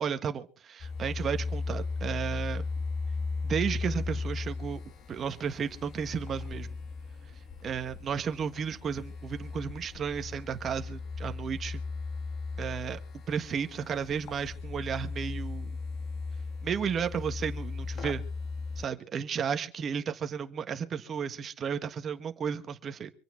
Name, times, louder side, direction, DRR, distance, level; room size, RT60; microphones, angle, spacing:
voice 1, 0.0-2.6 3.4-4.8 5.1-6.7 7.6-11.8 12.6-13.0 13.3-15.8 16.6-18.2 18.8-23.1, right 7 dB, 30° right, 1.5 m, -33 dB
sound 1, 0.8-18.9, left 4 dB, 35° left, 1.7 m, -37 dB
25.5 x 9.1 x 4.4 m
cardioid pair, 155°, 0 cm